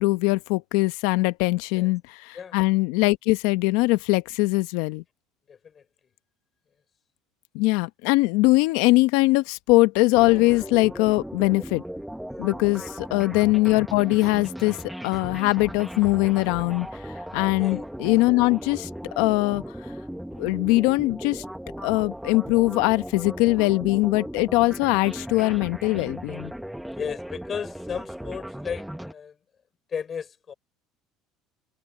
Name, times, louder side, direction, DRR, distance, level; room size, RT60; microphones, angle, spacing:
voice 1, 0.0-5.0 7.5-11.8 12.4-14.8 15.0-16.9 17.3-18.9 19.2-19.6 20.4-21.4 21.8-26.5, left 22 dB, 80° left, 0.9 m, -21 dB
voice 2, 5.5-5.8 17.6-17.9 26.9-29.4 29.9-30.5, left 7 dB, 35° left, 4.6 m, -34 dB
sound 1, 10.1-29.1, equal, 5° right, 1.3 m, -37 dB
supercardioid pair, 105°, 0 cm